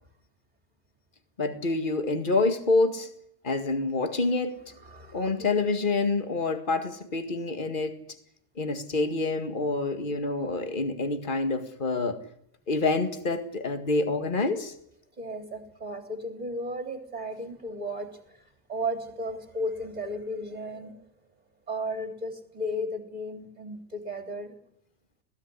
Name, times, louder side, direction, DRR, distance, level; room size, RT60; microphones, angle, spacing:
voice 1, 1.4-3.1 3.4-4.6 5.1-8.0 8.6-12.2 12.7-14.7, left 3 dB, 35° left, 9 dB, 2.1 m, -27 dB
voice 2, 4.8-5.5 15.2-18.4 18.7-21.0 21.7-24.5, equal, 30° right, 6 dB, 3.7 m, -34 dB
21.5 x 17.0 x 9.9 m, 0.71 s
omnidirectional pair, 1.4 m